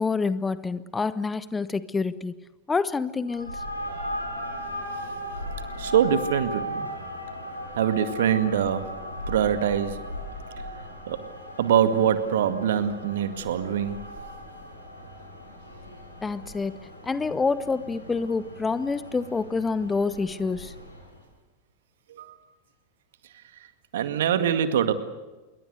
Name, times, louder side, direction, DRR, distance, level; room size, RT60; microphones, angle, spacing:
voice 1, 0.0-2.4 2.7-3.6 16.2-16.7 17.0-20.7, left 4 dB, 15° left, 16 dB, 0.9 m, -27 dB
sound 1, 3.3-21.2, equal, 85° left, 6.5 m, -37 dB
voice 2, 5.8-6.9 7.8-8.9 9.3-10.0 11.1-11.2 11.6-14.0 22.2-22.3 23.9-24.9, right 9 dB, 60° right, 10 dB, 2.0 m, -23 dB
27.5 x 22.5 x 6.8 m, 1.2 s
figure-of-eight pair, 90°, 0 cm